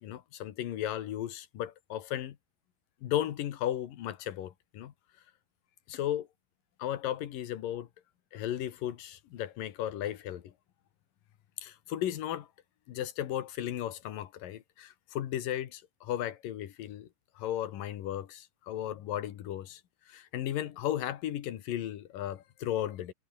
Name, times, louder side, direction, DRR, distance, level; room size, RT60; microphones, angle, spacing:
voice 1, 0.0-2.4 3.0-4.9 5.9-6.3 6.8-7.9 8.3-10.5 11.6-12.5 12.9-17.1 17.4-19.8 20.1-23.1, left 12 dB, 90° left, 3.2 m, -35 dB
omnidirectional pair, 3.8 m